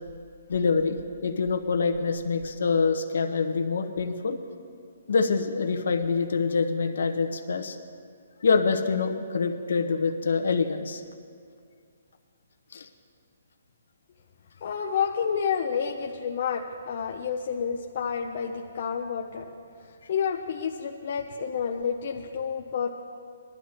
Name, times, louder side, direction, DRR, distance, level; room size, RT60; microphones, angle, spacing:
voice 1, 0.5-4.4 5.1-7.8 8.4-11.0 12.7-12.9, left 4 dB, 60° left, 5 dB, 1.0 m, -25 dB
voice 2, 14.6-19.5 20.1-22.9, left 7 dB, 35° left, 1 dB, 0.5 m, -29 dB
20.5 x 12.0 x 2.9 m, 2.2 s
hypercardioid pair, 175°, 0 cm